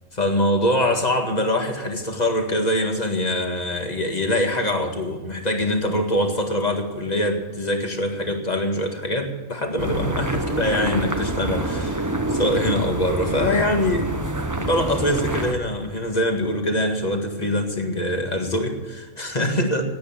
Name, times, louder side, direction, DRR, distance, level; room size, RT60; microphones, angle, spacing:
voice 1, 0.2-14.1 14.6-19.8, left 1 dB, 30° left, 4 dB, 2.0 m, -23 dB
sound 1, 9.8-15.5, right 1 dB, 15° right, 0.9 m, -26 dB
18.0 x 8.5 x 7.1 m, 1.4 s
omnidirectional pair, 1.5 m